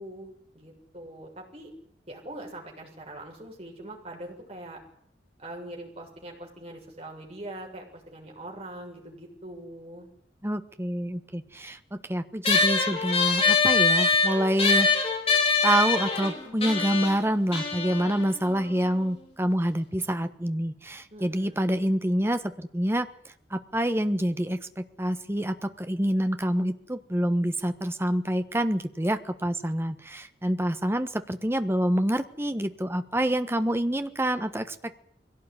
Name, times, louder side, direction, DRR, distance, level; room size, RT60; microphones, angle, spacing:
voice 1, 0.0-1.7 2.1-4.8 5.4-10.1 21.1-21.8, right 1 dB, 35° right, 0 dB, 6.8 m, -42 dB
voice 2, 10.4-14.9 15.6-23.1 23.5-35.0, right 1 dB, 15° right, 9 dB, 1.3 m, -27 dB
sound 1, 12.4-19.2, left 4 dB, 35° left, 4.9 m, -24 dB
22.5 x 17.5 x 9.8 m, 0.66 s
head